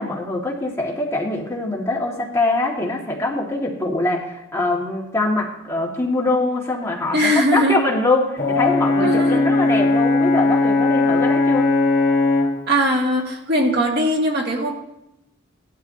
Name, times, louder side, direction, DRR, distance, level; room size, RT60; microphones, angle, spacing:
voice 1, 0.0-7.2 7.5-11.7, left 2 dB, 15° left, -3 dB, 2.0 m, -23 dB
voice 2, 7.1-7.8 9.0-9.5 12.7-14.7, equal, 55° right, 0 dB, 1.9 m, -20 dB
Brass instrument, 8.4-12.6, left 3 dB, 35° left, 1.5 m, -18 dB
18.5 x 11.5 x 2.8 m, 0.85 s
head